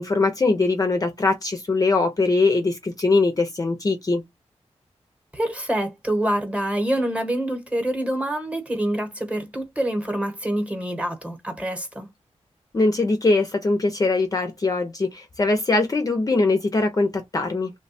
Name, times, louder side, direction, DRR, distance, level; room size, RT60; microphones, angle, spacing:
voice 1, 0.0-4.2 12.7-17.7, left 3 dB, 30° left, 0.5 m, -21 dB
voice 2, 5.3-12.1, right 1 dB, 10° right, 1.0 m, -26 dB
3.2 x 2.1 x 4.1 m
wide cardioid pair, 160°, 12 cm